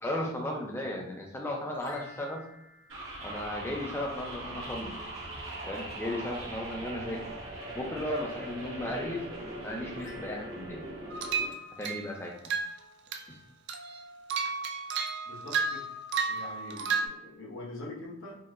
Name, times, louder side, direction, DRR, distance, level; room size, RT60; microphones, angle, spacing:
voice 1, 0.0-2.4 3.2-4.9 5.7-7.3 7.7-9.3 9.5-10.8 11.8-12.5, left 1 dB, 10° left, 0 dB, 0.5 m, -35 dB
sound 1, 1.7-4.2 9.9-12.5, left 2 dB, 40° left, 1.0 m, -54 dB
sound 2, 2.9-11.5, right 1 dB, 75° right, 1.3 m, -41 dB
sound 3, 11.1-12.1 12.4-12.8 13.1-13.3 13.7-17.1, right 5 dB, 55° right, 0.3 m, -32 dB
voice 2, 15.3-15.9 16.2-18.4, left 2 dB, 75° left, -2 dB, 0.9 m, -43 dB
4.4 x 2.1 x 2.4 m, 0.81 s
head